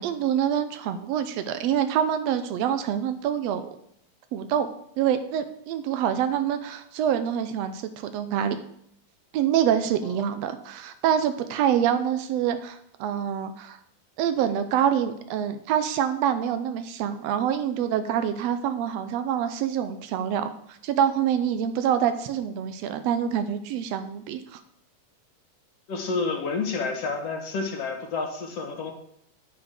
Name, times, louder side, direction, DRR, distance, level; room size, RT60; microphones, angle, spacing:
voice 1, 0.0-3.8 4.3-4.7 5.0-8.6 9.3-13.8 14.2-24.6, right 9 dB, 80° right, 9 dB, 1.5 m, -26 dB
voice 2, 25.9-28.9, left 4 dB, 55° left, 3 dB, 2.4 m, -29 dB
9.5 x 6.3 x 6.5 m, 0.70 s
omnidirectional pair, 3.9 m